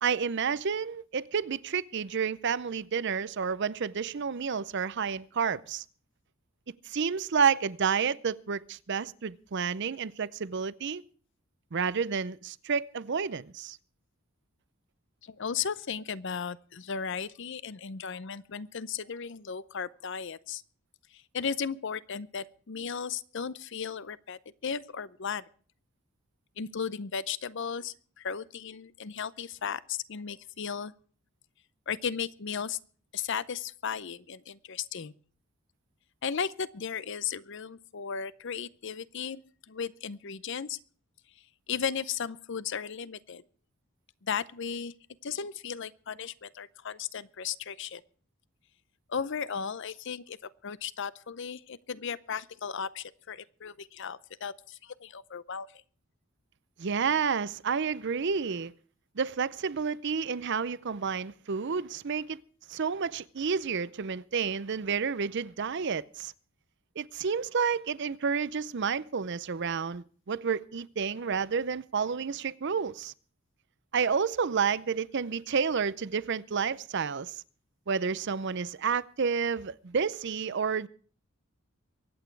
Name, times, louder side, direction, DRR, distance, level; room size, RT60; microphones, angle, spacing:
voice 1, 0.0-5.8 6.9-11.0 11.7-13.8 56.8-58.7 59.2-62.4 62.7-66.3 67.0-73.1 73.9-77.4 77.9-80.9, right 6 dB, 55° right, 0.6 m, -30 dB
voice 2, 15.2-20.6 21.1-25.4 26.6-30.9 31.9-32.8 33.1-35.1 36.2-39.4 39.7-40.8 41.7-43.4 44.2-44.9 45.2-48.0 49.1-55.7, left 6 dB, 60° left, 0.6 m, -35 dB
23.5 x 9.1 x 4.6 m
head